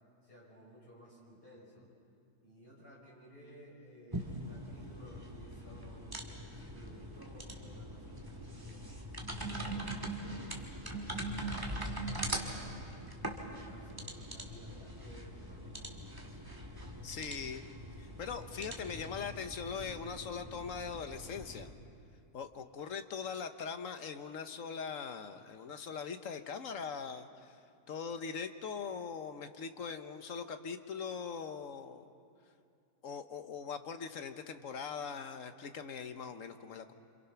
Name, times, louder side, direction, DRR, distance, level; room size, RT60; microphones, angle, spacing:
voice 1, 0.2-1.9 2.4-8.8 9.3-9.9 10.5-12.9 13.3-16.5, equal, 35° left, -4 dB, 6.5 m, -56 dB
sound 1, 4.1-21.7, right 1 dB, 15° right, 2.1 m, -42 dB
voice 2, 17.0-17.6 18.0-21.7 22.3-27.6 27.9-32.1 33.0-36.9, left 6 dB, 55° left, 8 dB, 1.3 m, -41 dB
28.0 x 26.5 x 5.8 m, 2.4 s
omnidirectional pair, 1.7 m